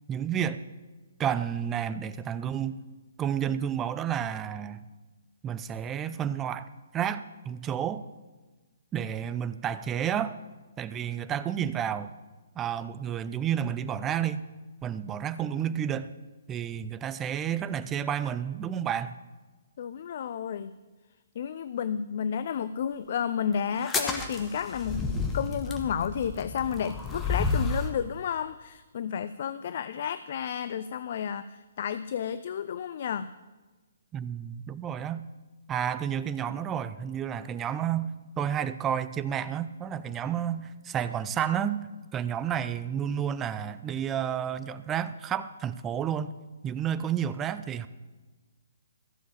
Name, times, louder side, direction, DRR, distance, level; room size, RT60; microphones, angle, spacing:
voice 1, 0.1-0.7 1.2-2.8 3.2-4.8 5.4-8.1 8.9-10.4 10.8-12.1 12.6-14.4 14.8-16.1 16.5-19.1 34.1-35.3 35.7-41.9 42.1-46.3 46.6-47.9, right 9 dB, 15° right, 14 dB, 0.5 m, -31 dB
voice 2, 19.8-20.8 21.4-33.3, left 8 dB, 50° left, 14 dB, 0.4 m, -32 dB
sound 1, 23.8-28.0, left 3 dB, 10° left, 1.3 m, -31 dB
14.5 x 6.9 x 7.1 m, 1.2 s
figure-of-eight pair, 130°, 0 cm